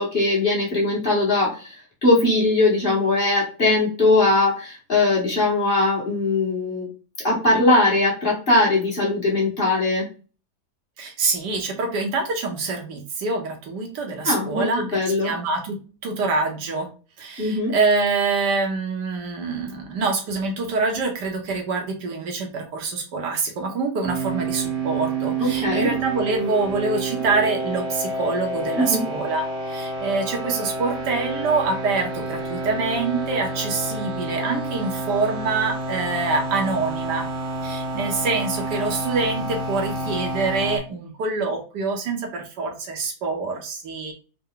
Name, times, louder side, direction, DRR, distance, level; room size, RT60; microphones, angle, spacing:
voice 1, 0.0-6.9 7.2-10.1 14.2-15.3 17.4-17.7 25.4-25.9 28.8-29.0, left 2 dB, 35° left, -5 dB, 1.7 m, -20 dB
voice 2, 11.0-14.8 15.2-16.9 17.2-37.3 37.6-44.1, right 3 dB, 85° right, 3 dB, 1.6 m, -25 dB
sound 1, 24.0-40.8, right 3 dB, 60° right, 1.0 m, -29 dB
4.5 x 2.3 x 3.7 m, 0.35 s
omnidirectional pair, 1.8 m